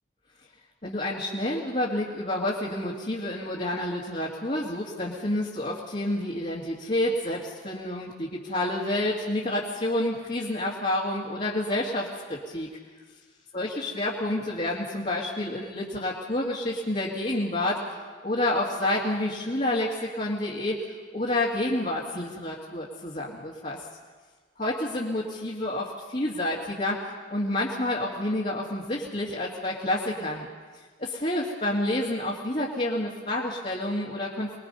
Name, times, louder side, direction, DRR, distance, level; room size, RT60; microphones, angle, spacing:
voice 1, 0.8-12.7 13.5-18.0 18.2-20.8 21.1-23.8 24.6-30.5 31.0-34.5, left 1 dB, 35° left, -5 dB, 2.1 m, -29 dB
24.5 x 21.0 x 5.5 m, 1.5 s
head